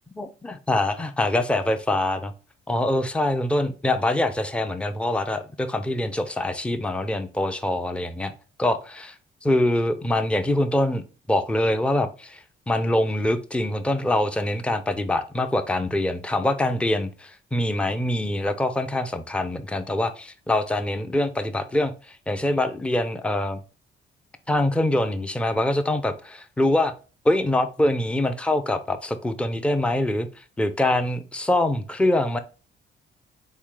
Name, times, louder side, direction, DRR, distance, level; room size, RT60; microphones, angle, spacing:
voice 1, 0.2-2.3 2.7-8.3 8.6-9.2 9.4-23.6 24.5-26.9 27.2-32.4, left 1 dB, 5° left, 9 dB, 0.5 m, -24 dB
4.0 x 3.2 x 3.6 m, 0.35 s
cardioid pair, 90°, 20 cm